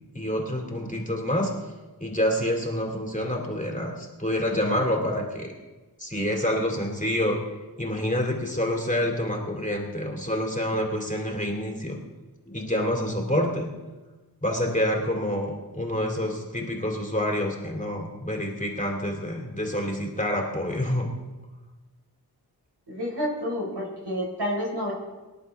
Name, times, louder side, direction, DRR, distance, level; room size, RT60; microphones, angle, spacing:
voice 1, 0.1-1.5 2.0-5.5 6.0-7.4 7.8-12.0 12.5-13.7 14.4-21.1, left 1 dB, 20° left, -1 dB, 2.9 m, -27 dB
voice 2, 22.9-24.9, equal, 85° right, -2 dB, 4.9 m, -29 dB
24.0 x 11.0 x 3.6 m, 1.2 s
wide cardioid pair, 70°, 39 cm